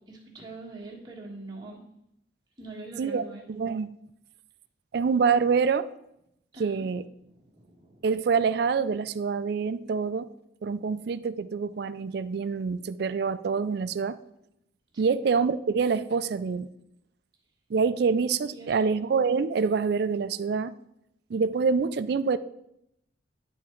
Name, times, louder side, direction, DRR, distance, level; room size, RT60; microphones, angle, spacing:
voice 1, 0.1-1.8 2.6-3.4 6.5-6.8 7.3-8.0 14.9-15.2 18.5-19.0, right 2 dB, 20° right, -3 dB, 1.5 m, -43 dB
voice 2, 3.0-3.9 4.9-5.9 6.6-7.0 8.0-10.3 10.6-14.2 15.0-16.7 17.7-20.7 21.3-22.4, right 5 dB, 55° right, 14 dB, 0.3 m, -26 dB
10.5 x 3.6 x 4.4 m, 0.79 s
head